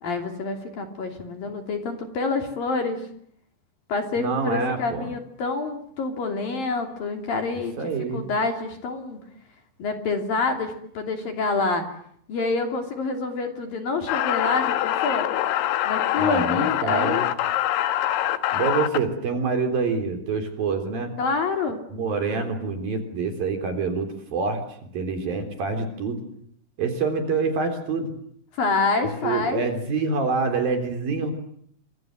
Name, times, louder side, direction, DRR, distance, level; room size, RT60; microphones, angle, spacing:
voice 1, 0.0-3.0 3.9-7.8 8.1-9.2 9.8-11.9 12.3-15.3 15.9-17.3 21.2-21.8 28.6-29.6, left 4 dB, 50° left, 5 dB, 4.1 m, -27 dB
voice 2, 4.2-5.1 7.8-8.2 16.2-17.2 18.5-21.1 21.9-24.6 24.9-26.2 26.8-28.1 29.2-31.3, right 4 dB, 50° right, 6 dB, 5.1 m, -26 dB
sound 1, 14.1-19.0, left 13 dB, 85° left, 4.2 m, -24 dB
28.5 x 26.0 x 7.9 m, 0.67 s
omnidirectional pair, 5.8 m